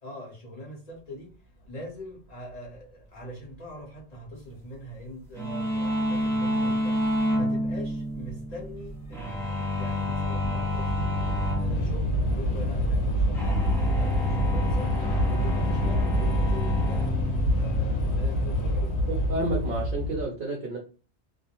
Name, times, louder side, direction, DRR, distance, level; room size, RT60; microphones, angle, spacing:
voice 1, 0.0-1.3 1.6-7.0 7.3-11.1 11.6-17.1 17.4-18.9, equal, 40° left, 0.9 m, -42 dB
sound 1, 5.4-19.8, left 1 dB, 5° left, 0.4 m, -30 dB
Train / Subway metro underground, 7.2-7.4 7.7-20.2, equal, 75° left, 1.0 m, -27 dB
voice 2, 19.1-20.8, right 2 dB, 55° right, 0.7 m, -30 dB
2.4 x 2.0 x 2.9 m
omnidirectional pair, 1.2 m